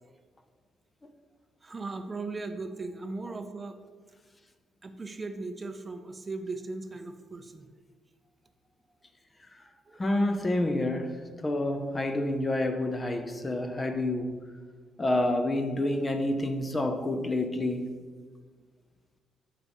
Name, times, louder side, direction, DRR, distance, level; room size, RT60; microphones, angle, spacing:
voice 1, 1.6-3.8 4.8-7.7 9.9-10.0, right 3 dB, 25° right, 0.6 m, -38 dB
voice 2, 10.0-14.5 15.0-17.9, left 1 dB, 25° left, 0.6 m, -28 dB
6.7 x 4.7 x 5.4 m
cardioid pair, 90°, 0 cm